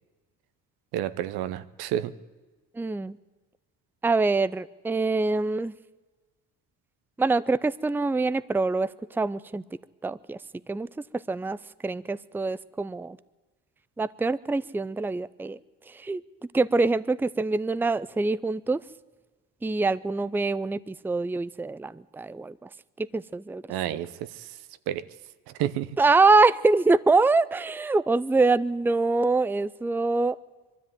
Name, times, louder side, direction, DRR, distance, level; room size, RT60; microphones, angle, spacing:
voice 1, 0.9-2.1 23.7-24.5 24.9-25.1 25.6-25.9, right 12 dB, 80° right, 14 dB, 1.0 m, -30 dB
voice 2, 2.8-3.2 4.0-5.7 7.2-9.6 10.0-10.4 10.7-10.9 11.3-11.6 11.8-13.2 14.0-15.6 15.9-16.2 16.5-18.8 19.6-22.7 23.0-23.6 26.0-30.4, right 3 dB, 5° right, 17 dB, 0.5 m, -24 dB
22.5 x 13.0 x 9.3 m, 1.3 s
supercardioid pair, 75°, 37 cm